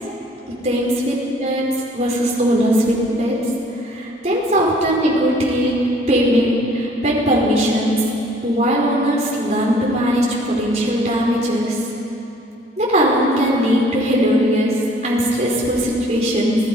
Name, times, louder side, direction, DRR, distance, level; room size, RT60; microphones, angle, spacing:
voice 1, 0.6-1.1 1.4-1.7 1.9-3.4 3.8-5.8 6.1-8.0 8.4-11.8 12.8-16.6, equal, 35° right, -4 dB, 4.9 m, -18 dB
29.0 x 17.5 x 5.5 m, 3.0 s
head